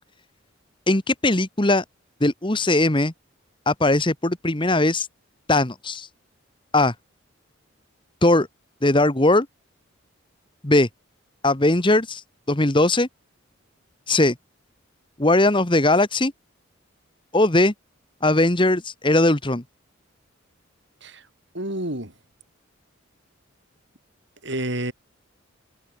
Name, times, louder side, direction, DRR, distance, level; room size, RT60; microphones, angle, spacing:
voice 1, 0.9-1.8 2.2-3.1 3.7-5.1 5.5-6.1 6.7-6.9 8.2-8.5 8.8-9.5 10.6-10.9 11.4-12.2 12.5-13.1 14.1-14.3 15.2-16.3 17.3-17.7 18.2-19.6, left 2 dB, 25° left, 1.4 m, -19 dB
voice 2, 21.5-22.1 24.4-24.9, right 1 dB, 60° right, 7.9 m, -29 dB
head